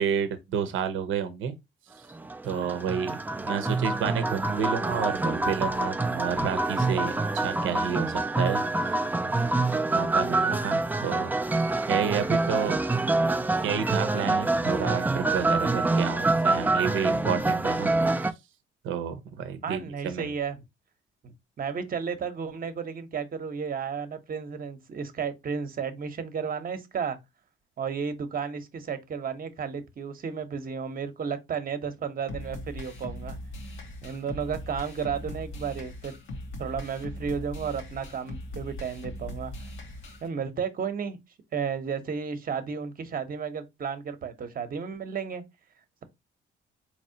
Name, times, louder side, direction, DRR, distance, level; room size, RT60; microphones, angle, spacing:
voice 1, 0.0-1.5 2.4-11.3 11.9-12.8 13.6-18.1 18.8-19.8 20.0-20.3, right 7 dB, 80° right, 0.7 m, -30 dB
sound 1, 2.1-18.3, right 2 dB, 10° right, 0.4 m, -26 dB
voice 2, 19.6-20.6 21.2-27.2 27.8-33.4 34.0-36.1 36.6-39.7 40.2-41.2 41.5-45.4, right 6 dB, 45° right, 0.9 m, -33 dB
sound 2, 32.3-40.3, left 1 dB, 85° left, 1.1 m, -39 dB
4.2 x 3.0 x 2.7 m
cardioid pair, 90°, 20 cm